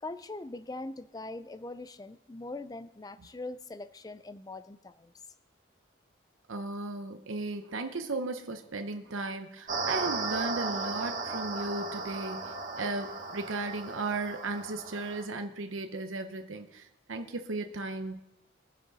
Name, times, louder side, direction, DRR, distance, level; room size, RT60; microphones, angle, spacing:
voice 1, 0.0-5.1, left 2 dB, 20° left, 0.4 m, -42 dB
voice 2, 6.5-18.2, right 3 dB, 85° right, 0.9 m, -36 dB
sound 1, 9.7-15.2, right 3 dB, 40° right, 1.4 m, -36 dB
22.0 x 7.5 x 4.1 m
head